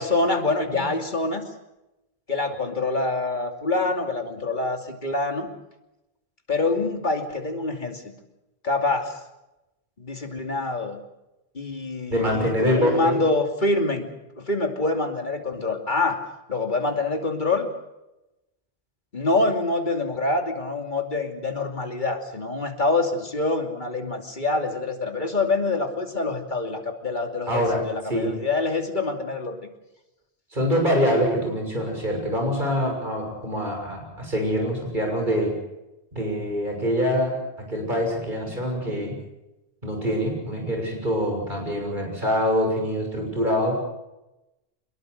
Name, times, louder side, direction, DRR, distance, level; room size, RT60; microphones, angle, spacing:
voice 1, 0.0-1.4 2.3-5.5 6.5-8.1 8.6-9.1 10.0-11.0 11.5-14.1 14.4-16.2 16.5-17.7 19.1-29.6, left 3 dB, 50° left, 4 dB, 2.9 m, -25 dB
voice 2, 12.1-13.2 27.5-27.8 28.1-28.3 30.5-35.5 36.1-39.1 39.8-43.8, equal, 50° right, 2 dB, 6.8 m, -24 dB
24.0 x 21.5 x 6.5 m, 0.95 s
omnidirectional pair, 1.1 m